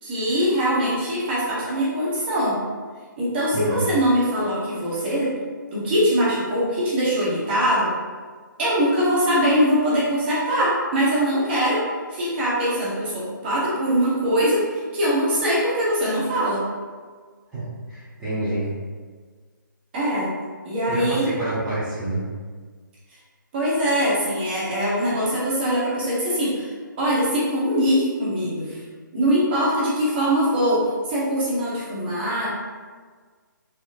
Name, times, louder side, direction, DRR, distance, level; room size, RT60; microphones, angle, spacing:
voice 1, 0.0-2.6 3.2-5.3 5.7-7.9 8.6-11.8 12.1-16.6 19.9-20.3 20.6-21.3 23.5-26.7 27.0-28.8 29.1-32.5, equal, 30° right, -7 dB, 1.1 m, -22 dB
voice 2, 17.5-18.7 20.9-22.2, right 2 dB, 5° right, -15 dB, 0.9 m, -28 dB
4.1 x 2.9 x 2.6 m, 1.5 s
hypercardioid pair, 155°, 11 cm